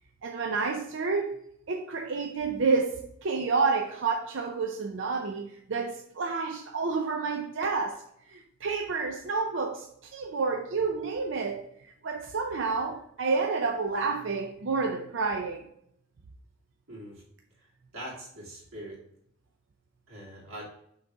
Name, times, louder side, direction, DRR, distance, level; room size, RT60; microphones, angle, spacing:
voice 1, 0.2-1.4 1.7-8.0 8.3-15.7, right 4 dB, 60° right, 0.5 m, -29 dB
voice 2, 16.9-17.2 17.6-17.7 17.9-19.0 20.1-20.7, right 1 dB, 90° right, 2.7 m, -42 dB
5.8 x 4.0 x 4.7 m
head